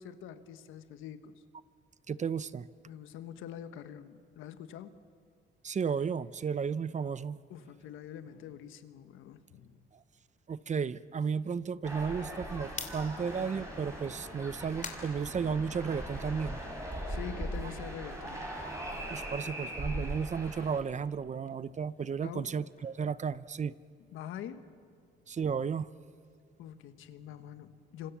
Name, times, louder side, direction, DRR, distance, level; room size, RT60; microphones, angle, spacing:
voice 1, 0.0-1.3 2.9-5.0 7.5-9.8 17.1-18.5 22.2-22.5 24.1-24.8 26.6-28.1, left 9 dB, 90° left, 10 dB, 1.4 m, -45 dB
voice 2, 2.1-2.7 5.6-7.4 10.5-16.7 19.1-23.7 25.3-25.9, right 6 dB, 35° right, 17 dB, 0.7 m, -33 dB
sound 1, 11.8-20.8, right 1 dB, 15° right, 6.7 m, -40 dB
sound 2, 12.7-16.1 16.5-19.4 19.7-23.9, left 5 dB, 40° left, 3.1 m, -50 dB
26.0 x 26.0 x 7.2 m, 2.1 s
cardioid pair, 90°, 20 cm